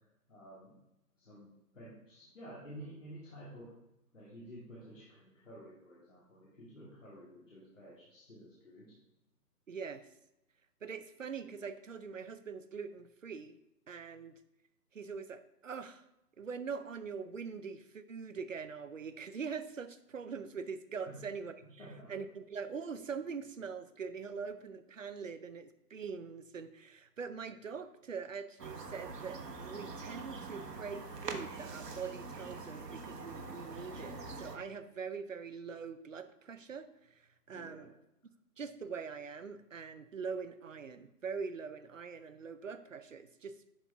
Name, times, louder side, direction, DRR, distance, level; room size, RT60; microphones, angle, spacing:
voice 1, 0.3-0.8 1.2-1.5 1.7-3.7 4.1-8.9 21.1-21.2 21.8-22.1 37.5-37.9, equal, 50° left, -7 dB, 2.6 m, -51 dB
voice 2, 9.7-10.1 10.8-13.6 13.9-14.3 14.9-16.1 16.4-37.9 38.6-43.6, right 5 dB, 55° right, 11 dB, 0.6 m, -43 dB
sound 1, 28.6-34.6, right 3 dB, 75° right, 1.3 m, -44 dB
11.5 x 4.4 x 3.5 m, 0.90 s
hypercardioid pair, 170°, 48 cm